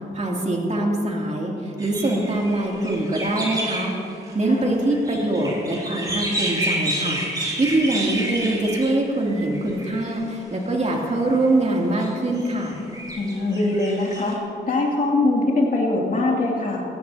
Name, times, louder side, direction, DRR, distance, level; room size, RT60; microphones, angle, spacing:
voice 1, 0.1-3.9 4.3-12.8, right 1 dB, 40° right, -2 dB, 2.9 m, -23 dB
sound 1, 1.8-10.1 10.8-11.5 12.0-14.3, right 1 dB, 20° right, 3.1 m, -30 dB
voice 2, 13.1-14.4 14.7-16.8, left 2 dB, 50° left, -2 dB, 2.7 m, -22 dB
17.5 x 15.0 x 2.9 m, 2.8 s
cardioid pair, 65°, 18 cm